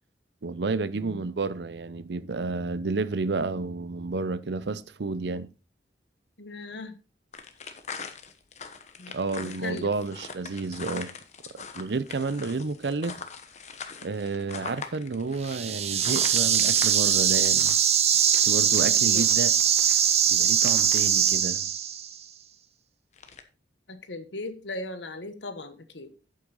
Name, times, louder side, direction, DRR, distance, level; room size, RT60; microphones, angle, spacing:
voice 1, 0.4-5.5 9.1-11.2 11.7-13.2 14.0-17.8 18.4-19.5 20.3-21.7, right 3 dB, 75° right, 0.6 m, -30 dB
voice 2, 0.9-1.3 6.4-7.0 9.0-9.9 19.0-19.2 23.9-26.2, left 2 dB, 85° left, 1.3 m, -38 dB
sound 1, 7.3-21.3 23.1-23.4, left 5 dB, 40° left, 1.1 m, -42 dB
sound 2, 15.4-22.1, right 9 dB, 35° right, 0.7 m, -22 dB
8.6 x 7.8 x 4.0 m
head